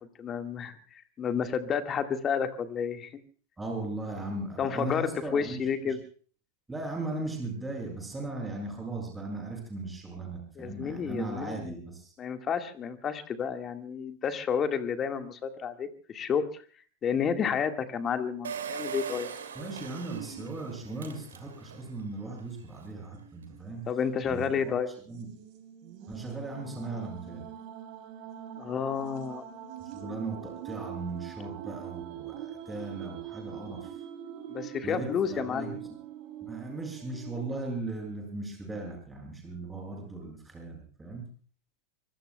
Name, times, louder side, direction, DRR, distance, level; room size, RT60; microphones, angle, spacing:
voice 1, 0.2-0.7 1.2-3.1 4.6-6.0 10.6-11.8 12.2-16.6 17.0-19.3 23.9-24.9 28.6-29.4 34.5-35.8, left 7 dB, 25° left, 7 dB, 1.8 m, -31 dB
voice 2, 3.6-5.7 6.7-12.1 19.6-23.8 24.2-24.8 25.1-25.3 26.1-27.4 29.9-33.9 34.8-35.8 36.4-41.2, right 2 dB, 10° right, 0 dB, 7.4 m, -37 dB
Engine, 18.4-21.9 22.4-22.5 22.7-22.8, right 7 dB, 65° right, 2.7 m, -40 dB
sound 1, 23.0-23.6 24.0-24.1 25.1-37.5, right 10 dB, 45° right, 3.5 m, -43 dB
25.0 x 24.5 x 2.3 m, 0.43 s
figure-of-eight pair, 90°, 0 cm